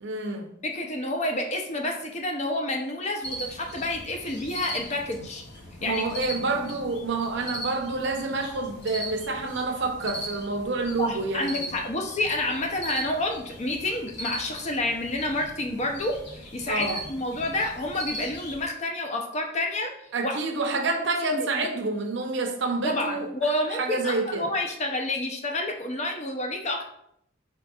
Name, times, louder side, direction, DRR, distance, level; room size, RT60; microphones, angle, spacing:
voice 1, 0.0-0.5 5.8-11.7 16.7-17.0 20.1-23.3 23.7-24.5, right 3 dB, 65° right, 3 dB, 0.7 m, -28 dB
voice 2, 0.6-5.4 5.8-6.0 11.0-19.9 20.2-20.3 21.3-21.7 22.8-26.8, left 1 dB, 35° left, 3 dB, 0.6 m, -29 dB
sound 1, 3.2-18.6, equal, 60° left, 1.0 m, -39 dB
4.5 x 3.8 x 2.3 m, 0.73 s
head